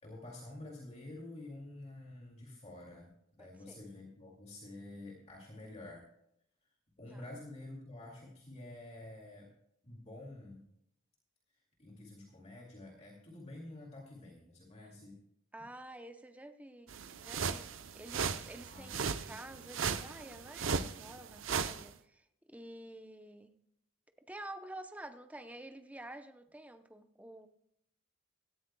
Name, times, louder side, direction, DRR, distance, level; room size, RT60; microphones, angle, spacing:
voice 1, 0.0-6.0 7.0-9.5 9.8-10.6 11.8-15.2 18.7-19.4, left 2 dB, 35° left, -2 dB, 2.4 m, -49 dB
voice 2, 3.4-3.8 7.1-7.2 15.5-16.9 17.2-23.5 24.3-27.5, right 1 dB, 5° right, 8 dB, 0.7 m, -50 dB
sound 1, 16.9-21.9, right 5 dB, 70° right, 0.7 m, -37 dB
17.5 x 13.5 x 2.3 m, 0.75 s
head